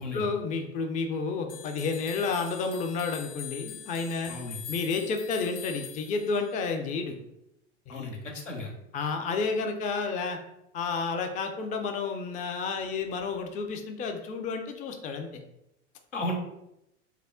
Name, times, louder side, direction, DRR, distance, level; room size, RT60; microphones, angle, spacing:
voice 1, 0.0-4.3 4.7-7.2 7.9-8.1 8.9-10.4 10.7-15.4, left 4 dB, 20° left, 5 dB, 0.4 m, -31 dB
sound 1, 1.5-6.7, left 8 dB, 65° left, 0.7 m, -44 dB
voice 2, 4.3-4.6 7.9-8.7 16.1-16.4, left 1 dB, 90° left, 0 dB, 0.9 m, -34 dB
3.3 x 2.0 x 3.6 m, 0.84 s
hypercardioid pair, 85°, 36 cm